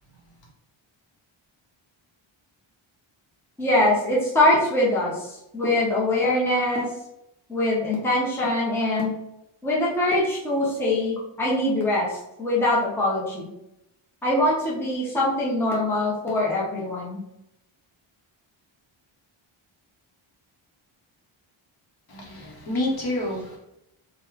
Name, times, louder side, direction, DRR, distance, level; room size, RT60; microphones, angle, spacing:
voice 1, 3.6-6.9 7.5-9.1 9.6-13.5 14.2-17.2, left 1 dB, 5° left, -6 dB, 0.7 m, -23 dB
voice 2, 22.1-23.6, left 1 dB, 50° left, -2 dB, 0.9 m, -28 dB
3.1 x 2.2 x 3.5 m, 0.85 s
wide cardioid pair, 160°, 49 cm